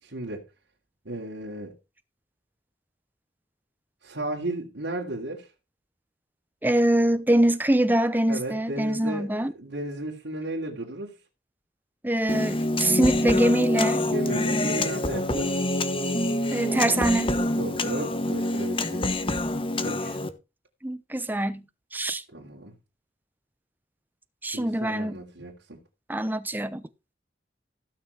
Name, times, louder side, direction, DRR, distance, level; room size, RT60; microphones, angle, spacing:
voice 1, 0.0-0.4 1.0-1.7 4.0-5.5 8.3-11.2 14.1-15.6 17.6-19.1 19.8-20.2 22.3-22.8 24.5-25.8, right 1 dB, 85° right, 2.8 m, -34 dB
voice 2, 6.6-9.5 12.0-14.1 16.5-17.4 20.8-21.6 21.9-22.2 24.4-25.2 26.1-26.8, right 1 dB, 10° right, 0.8 m, -24 dB
Human voice, 12.3-20.3, left 1 dB, 30° left, 1.2 m, -26 dB
16.0 x 6.3 x 4.7 m
head